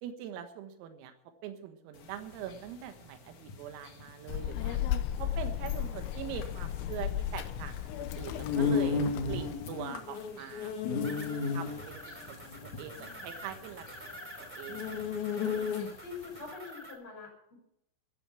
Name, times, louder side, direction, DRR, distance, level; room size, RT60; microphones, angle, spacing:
voice 1, 0.0-1.1 1.4-4.8 5.2-9.0 9.3-10.7 11.5-13.9 14.6-15.5, right 9 dB, 85° right, 7 dB, 4.1 m, -43 dB
sound 1, 2.0-16.2, left 5 dB, 50° left, 2.6 m, -35 dB
Child speech kid speaking, 4.3-9.6, left 11 dB, 85° left, 3.6 m, -35 dB
sound 2, 11.0-16.9, equal, 5° right, 1.9 m, -47 dB
voice 2, 16.0-17.6, left 4 dB, 30° left, 1 dB, 7.0 m, -46 dB
14.5 x 14.0 x 6.0 m, 0.77 s
omnidirectional pair, 5.9 m